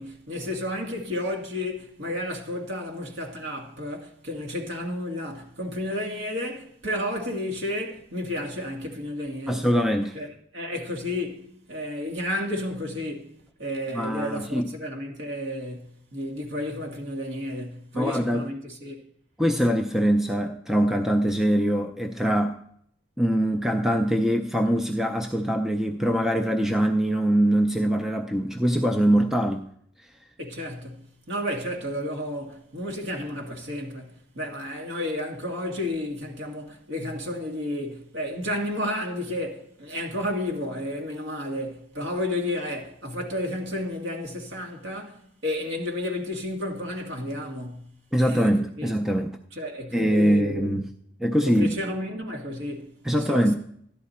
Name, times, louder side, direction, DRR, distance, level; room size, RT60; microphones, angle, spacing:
voice 1, 0.0-9.7 10.1-10.3 10.5-13.3 13.6-19.0 30.4-47.9 48.2-48.9 49.5-50.8 51.4-53.5, left 1 dB, 65° right, 1.9 m, -32 dB
voice 2, 9.5-10.2 13.9-14.7 17.9-18.5 19.4-22.6 23.2-29.7 48.1-49.3 49.9-50.9 51.2-51.7 53.0-53.5, equal, ahead, 0.4 m, -23 dB
13.5 x 11.0 x 4.2 m
head